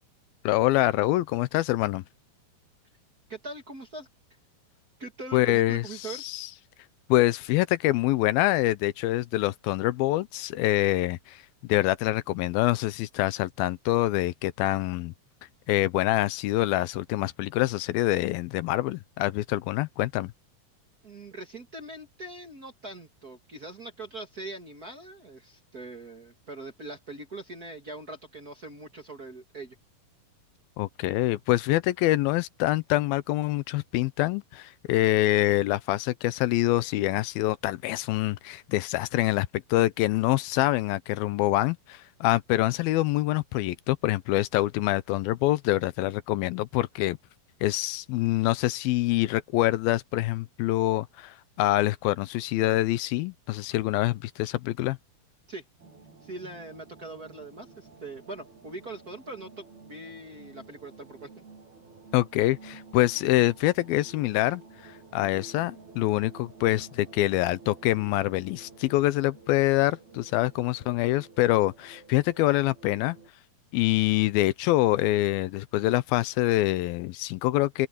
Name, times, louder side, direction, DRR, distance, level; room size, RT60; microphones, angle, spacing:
voice 1, 0.4-2.0 5.3-5.8 6.2-6.5 7.1-15.1 15.7-20.3 30.8-47.2 47.6-55.0 62.1-73.2 73.7-77.9, left 17 dB, 85° left, 2.5 m, -25 dB
voice 2, 3.3-4.1 5.0-6.2 21.0-29.8 55.5-55.6 56.2-61.4, right 2 dB, 35° right, 1.6 m, -42 dB
sound 1, 55.8-73.3, right 4 dB, 90° right, 8.8 m, -51 dB
open air
omnidirectional pair, 4.3 m